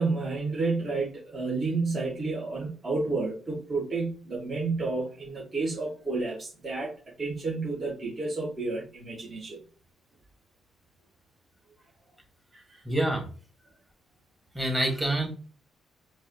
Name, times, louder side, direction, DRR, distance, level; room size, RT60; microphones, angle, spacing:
voice 1, 0.0-6.9 7.2-9.6 12.5-12.8, right 3 dB, 40° right, -5 dB, 2.0 m, -30 dB
voice 2, 12.8-13.2 14.5-15.3, right 1 dB, 15° right, 2 dB, 2.1 m, -26 dB
4.6 x 3.0 x 3.1 m, 0.38 s
supercardioid pair, 60°, 0 cm